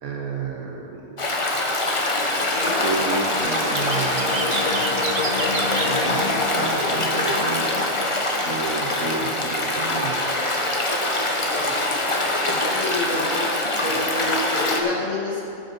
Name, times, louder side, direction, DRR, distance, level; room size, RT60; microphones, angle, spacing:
voice 1, 0.0-1.6 2.8-5.2 5.5-10.4, right 4 dB, 75° right, 0 dB, 1.4 m, -32 dB
Stream, 1.2-14.8, left 1 dB, 25° left, 0.9 m, -24 dB
sound 1, 2.2-9.6, left 4 dB, 80° left, 1.4 m, -33 dB
voice 2, 2.5-2.9 11.5-11.9 12.7-13.5 13.8-15.4, left 2 dB, 55° left, -5 dB, 2.6 m, -28 dB
sound 2, 3.4-7.3 7.8-8.6, right 4 dB, 40° right, 0.6 m, -33 dB
14.0 x 6.1 x 5.3 m, 2.7 s
omnidirectional pair, 1.5 m